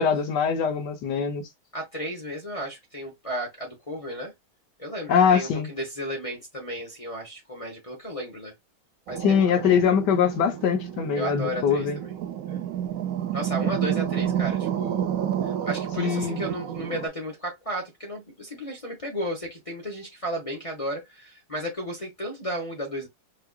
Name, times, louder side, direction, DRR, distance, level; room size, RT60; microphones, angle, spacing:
voice 1, 0.0-1.5 5.1-5.7 9.2-12.0 16.0-16.5, left 7 dB, 65° left, 1.2 m, -22 dB
voice 2, 1.7-4.3 4.8-8.5 9.1-9.8 11.2-12.1 12.4-12.6 13.3-15.1 15.4-23.1, equal, 35° left, 0.5 m, -34 dB
sound 1, 9.1-17.1, right 10 dB, 80° right, 0.7 m, -30 dB
4.7 x 2.4 x 2.3 m
omnidirectional pair, 2.3 m